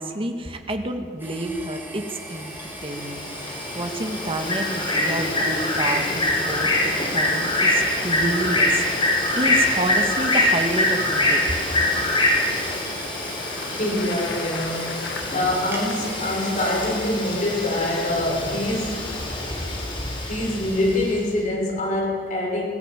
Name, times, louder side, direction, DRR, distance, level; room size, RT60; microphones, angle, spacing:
voice 1, 0.0-2.6 2.8-11.4, right 1 dB, 30° right, 5 dB, 1.9 m, -29 dB
sound 1, 1.2-19.2, right 1 dB, 10° right, 3.8 m, -40 dB
Bird, 2.4-21.1, left 1 dB, 30° left, 5.2 m, -25 dB
Bicycle, 13.0-16.2, left 4 dB, 85° left, 2.2 m, -38 dB
voice 2, 13.6-19.1 20.3-22.7, left 1 dB, 45° left, -1 dB, 6.4 m, -25 dB
21.0 x 16.0 x 9.2 m, 2.1 s
head